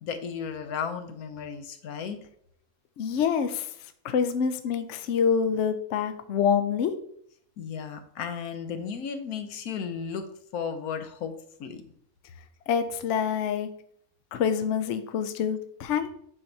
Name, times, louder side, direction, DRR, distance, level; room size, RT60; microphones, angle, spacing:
voice 1, 0.0-2.2 7.6-11.3 11.6-11.8, left 6 dB, 80° left, 8 dB, 1.2 m, -34 dB
voice 2, 3.0-3.7 4.0-6.9 12.7-13.7 14.3-16.1, left 7 dB, 65° left, 9 dB, 0.8 m, -26 dB
8.7 x 2.9 x 5.3 m, 0.66 s
omnidirectional pair, 1.5 m